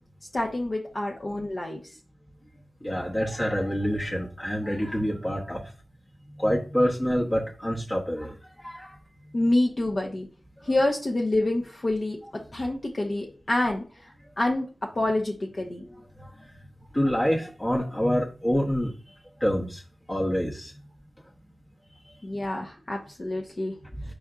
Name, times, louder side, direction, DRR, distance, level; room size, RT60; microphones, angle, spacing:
voice 1, 0.3-2.0 9.3-10.3 10.6-16.0 22.2-23.7, left 1 dB, 50° left, -1 dB, 0.8 m, -27 dB
voice 2, 2.8-5.7 6.4-8.4 8.6-8.9 16.2-16.3 16.9-18.9 19.4-19.8 20.1-20.7, equal, 25° left, -4 dB, 1.0 m, -26 dB
4.9 x 4.1 x 2.4 m, 0.37 s
cardioid pair, 55°, 0 cm